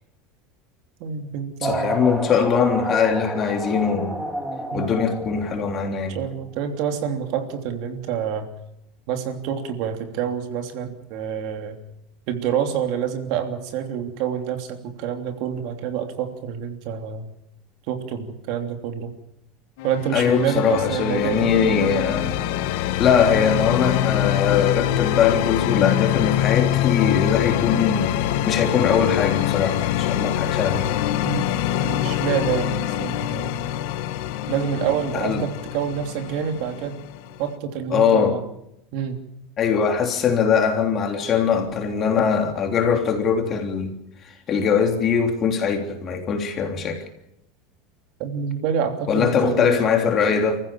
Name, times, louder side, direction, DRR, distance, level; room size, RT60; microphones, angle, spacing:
voice 1, 1.0-2.0 4.7-5.0 6.1-8.5 9.1-11.8 12.3-17.3 17.9-19.1 19.8-21.8 31.2-31.5 31.8-33.5 34.5-37.0 37.4-38.4 38.9-39.2 48.2-49.8, right 8 dB, 55° right, 3.1 m, -27 dB
voice 2, 1.6-4.2 4.7-6.2 20.1-22.3 22.7-30.9 35.1-35.5 37.9-38.4 39.6-44.0 44.5-47.0 49.1-50.6, left 6 dB, 30° left, 3.3 m, -21 dB
sound 1, 1.6-6.1, right 1 dB, 10° right, 2.4 m, -30 dB
sound 2, 19.8-37.5, left 12 dB, 70° left, 1.5 m, -24 dB
29.0 x 15.0 x 7.2 m
supercardioid pair, 155°, 0 cm